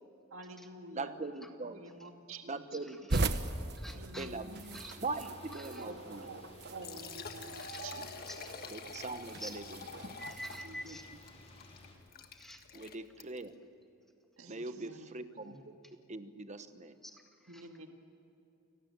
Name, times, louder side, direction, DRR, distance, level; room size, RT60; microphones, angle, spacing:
voice 1, 0.3-1.1 1.7-2.6 4.0-4.9 5.8-6.4 6.6-8.1 10.6-11.0 14.4-15.1 15.4-15.6 17.5-17.9, right 2 dB, 80° right, 4 dB, 2.0 m, -49 dB
voice 2, 0.9-1.8 2.5-3.3 4.2-6.4 8.7-9.6 10.0-10.2 12.7-13.5 14.5-15.6 16.1-16.9, right 3 dB, 35° right, 10 dB, 1.1 m, -41 dB
voice 3, 2.8-3.3 3.8-4.3 4.7-5.9 7.5-7.9 8.3-8.5 9.3-9.6 10.2-11.1 12.3-12.6 17.0-17.7, equal, ahead, 3 dB, 1.8 m, -48 dB
sound 1, 3.1-10.6, right 2 dB, 55° right, 1.2 m, -39 dB
sound 2, 4.5-11.9, left 2 dB, 30° left, 4.4 m, -55 dB
Liquid, 6.7-13.5, left 6 dB, 50° left, 1.5 m, -49 dB
30.0 x 19.0 x 8.9 m, 2.8 s
head